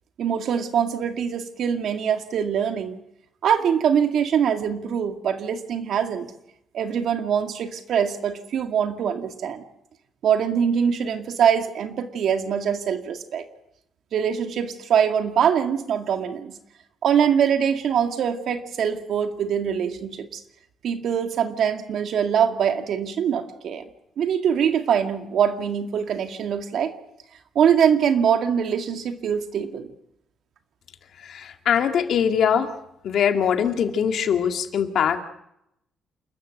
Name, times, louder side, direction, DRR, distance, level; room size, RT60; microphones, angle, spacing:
voice 1, 0.2-3.0 3.4-6.3 6.7-9.6 10.2-13.5 14.1-16.6 17.0-20.4 20.8-23.8 24.2-26.9 27.6-29.9, right 8 dB, 70° right, 7 dB, 2.1 m, -23 dB
voice 2, 31.2-32.7 33.0-35.2, left 8 dB, 65° left, 6 dB, 2.1 m, -22 dB
29.0 x 13.5 x 8.0 m, 0.81 s
cardioid pair, 90°, 0 cm